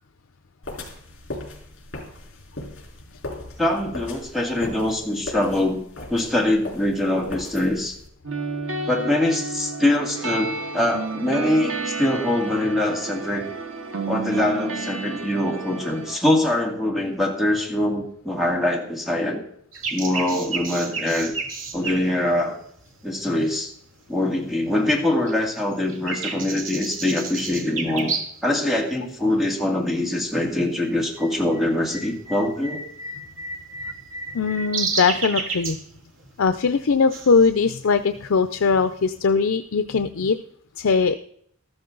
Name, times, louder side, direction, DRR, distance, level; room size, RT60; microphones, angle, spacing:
sound 1, 0.6-8.1, left 2 dB, 65° left, 4.0 m, -38 dB
voice 1, 3.6-5.8 6.1-8.0 8.9-13.5 14.0-19.4 19.9-21.3 21.7-22.6 23.0-23.7 24.1-28.1 28.4-32.8, left 1 dB, ahead, 1 dB, 2.3 m, -23 dB
sound 2, 8.2-16.2, right 3 dB, 90° right, 1.7 m, -31 dB
sound 3, 19.7-23.7 24.2-25.0 25.3-28.5 28.8-28.9 29.6-29.9 30.2-39.2, right 4 dB, 75° right, 2.0 m, -32 dB
voice 2, 34.3-35.8 36.4-40.4 40.8-41.2, left 5 dB, 85° left, 10 dB, 0.6 m, -20 dB
13.5 x 13.0 x 3.9 m, 0.67 s
head